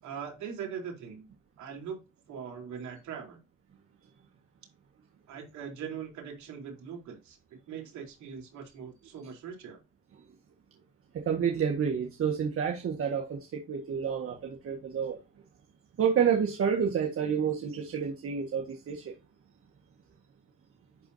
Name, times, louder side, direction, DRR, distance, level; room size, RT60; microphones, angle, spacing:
voice 1, 0.0-1.3 1.6-2.0 2.3-3.4 5.3-7.4 7.7-9.8, right 7 dB, 60° right, 3.9 m, -41 dB
voice 2, 11.1-15.2 16.0-19.1, right 7 dB, 45° right, 1.8 m, -29 dB
11.0 x 4.5 x 2.8 m
supercardioid pair, 90°, 32 cm